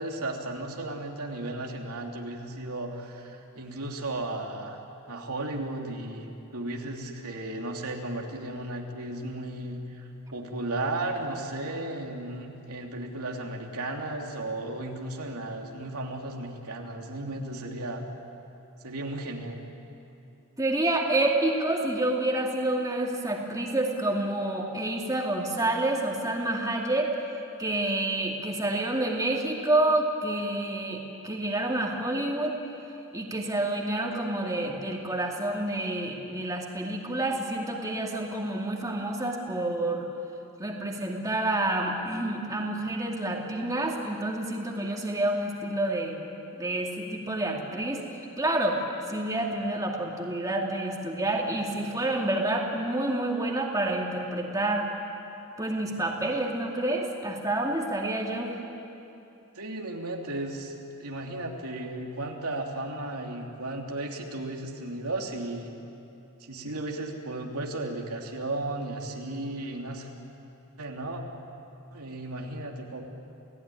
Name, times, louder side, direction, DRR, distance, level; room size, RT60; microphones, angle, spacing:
voice 1, 0.0-4.8 5.1-18.0 18.8-19.6 59.5-60.7 61.0-65.8 66.4-70.1 70.8-71.2 71.9-73.1, right 2 dB, 85° right, 1 dB, 2.9 m, -35 dB
voice 2, 20.6-27.1 27.6-32.6 33.1-40.1 40.6-46.2 46.6-48.0 48.4-48.8 49.1-54.8 55.6-58.5, right 1 dB, 15° right, -1 dB, 2.5 m, -28 dB
29.0 x 17.5 x 10.0 m, 2.8 s
head